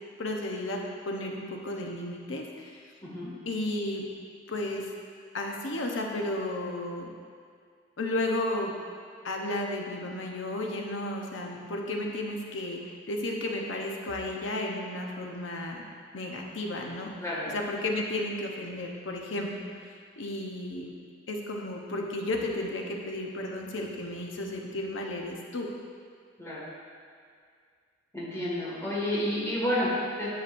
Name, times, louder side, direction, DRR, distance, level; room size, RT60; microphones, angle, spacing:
voice 1, 0.2-2.8 3.5-4.1 4.5-4.9 5.3-7.1 8.0-8.7 9.2-15.8 16.1-17.1 17.5-19.7 20.2-20.9 21.3-25.7, left 1 dB, 75° left, 0 dB, 0.9 m, -33 dB
voice 2, 28.1-30.3, left 1 dB, 15° left, -8 dB, 1.9 m, -30 dB
10.5 x 6.0 x 2.6 m, 2.1 s
head